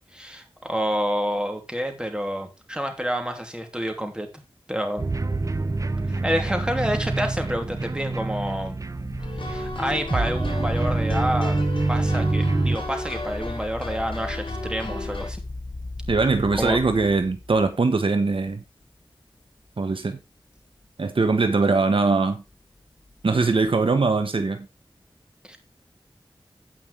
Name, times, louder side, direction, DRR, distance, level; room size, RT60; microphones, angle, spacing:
voice 1, 0.1-4.3 4.7-5.1 6.1-8.8 9.4-11.6 11.9-15.4 16.5-16.8 25.5-25.6, equal, 10° right, 2.9 m, -28 dB
sound 1, 5.0-12.8, right 2 dB, 40° right, 0.7 m, -26 dB
sound 2, 8.9-17.7 18.4-18.8 19.4-19.5 23.1-23.7, left 2 dB, 45° left, 2.2 m, -37 dB
Saloon piano honky tonk, 9.2-15.3, left 2 dB, 65° left, 3.7 m, -35 dB
voice 2, 16.1-18.6 19.8-20.2 21.0-22.4 23.2-24.7, right 3 dB, 75° right, 1.2 m, -21 dB
16.5 x 5.6 x 3.4 m
wide cardioid pair, 75°, 9 cm